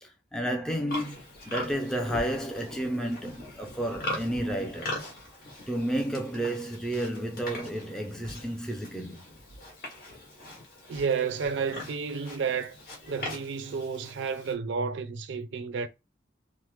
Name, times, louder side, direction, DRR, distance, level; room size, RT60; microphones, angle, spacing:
voice 1, 0.0-1.2 1.5-5.0 5.7-9.2, right 1 dB, 5° left, 0.3 m, -31 dB
Livestock farm animals working animals, 0.9-14.5, left 1 dB, 50° left, 1.1 m, -40 dB
voice 2, 10.9-12.8 13.1-15.9, right 5 dB, 75° right, 0.4 m, -31 dB
3.0 x 2.0 x 3.1 m
head